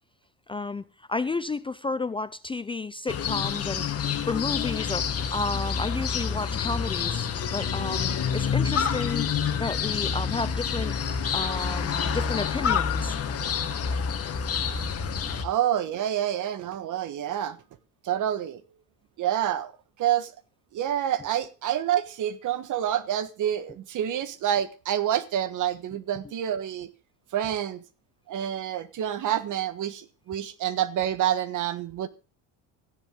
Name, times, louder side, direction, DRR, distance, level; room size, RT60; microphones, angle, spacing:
voice 1, 0.5-3.9 4.3-9.3 9.6-11.0 11.3-13.2 15.2-15.3, left 3 dB, 15° left, 0.5 m, -32 dB
sound 1, 3.1-15.4, left 7 dB, 35° left, 2.2 m, -28 dB
voice 2, 15.4-17.6 18.0-18.6 19.2-19.7 20.0-20.3 20.7-26.9 27.3-27.8 28.3-32.1, right 10 dB, 50° right, 1.5 m, -28 dB
15.0 x 10.5 x 3.9 m
supercardioid pair, 110°, 39 cm